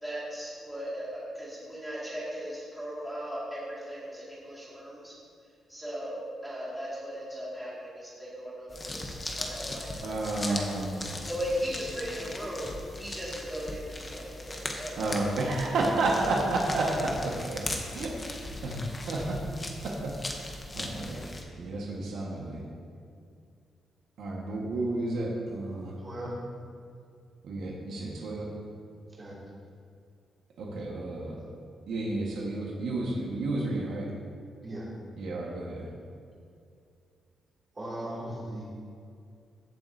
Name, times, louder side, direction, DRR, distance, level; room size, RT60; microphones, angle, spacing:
voice 1, 0.0-5.2 5.7-9.9 10.5-10.9 11.2-15.8, equal, ahead, -8 dB, 2.2 m, -37 dB
sound 1, 8.7-21.4, left 2 dB, 20° left, 0.8 m, -39 dB
voice 2, 10.0-11.2 14.9-17.6 17.9-19.4 19.8-21.2 21.5-22.6 24.2-26.0 26.2-26.3 27.4-28.5 30.6-31.4 31.9-34.1 35.2-35.9, right 2 dB, 70° right, -2 dB, 1.5 m, -31 dB
voice 3, 26.0-26.3 29.1-29.4 34.6-34.9 37.7-38.6, right 1 dB, 20° right, -6 dB, 2.6 m, -38 dB
15.5 x 7.6 x 2.8 m, 2.3 s
wide cardioid pair, 175°, 0 cm